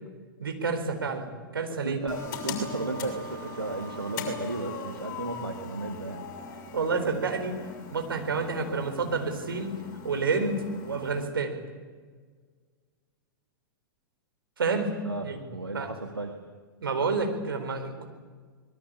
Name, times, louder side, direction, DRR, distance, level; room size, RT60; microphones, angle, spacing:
voice 1, 0.4-2.0 6.7-7.6 7.9-9.7 10.0-11.5 14.6-15.4 15.7-15.9 16.8-18.1, right 4 dB, 70° right, 5 dB, 4.5 m, -29 dB
voice 2, 1.8-6.2 15.0-16.4, right 2 dB, 85° right, 3 dB, 2.1 m, -34 dB
sound 1, 2.1-11.3, left 4 dB, 45° left, 6.6 m, -40 dB
25.0 x 21.5 x 8.7 m, 1.5 s
figure-of-eight pair, 100°, 12 cm